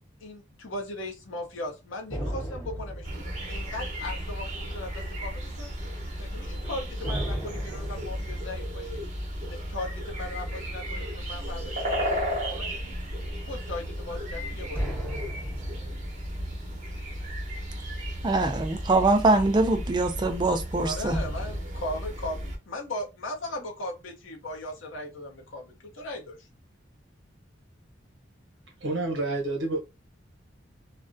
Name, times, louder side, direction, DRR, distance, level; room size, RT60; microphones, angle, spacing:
voice 1, 0.2-5.7 6.2-9.0 9.4-12.9 13.4-15.1 20.8-26.4, left 1 dB, 80° left, 0.7 m, -38 dB
sound 1, 2.1-5.8 6.1-6.2 7.0-11.7 14.8-18.4 21.1-21.6, equal, 15° left, 1.1 m, -38 dB
sound 2, 3.0-22.6, equal, 40° right, 0.7 m, -34 dB
voice 2, 18.2-21.2, right 2 dB, 25° right, 0.3 m, -23 dB
voice 3, 28.8-29.8, right 2 dB, 70° right, 0.8 m, -28 dB
2.4 x 2.1 x 2.5 m
head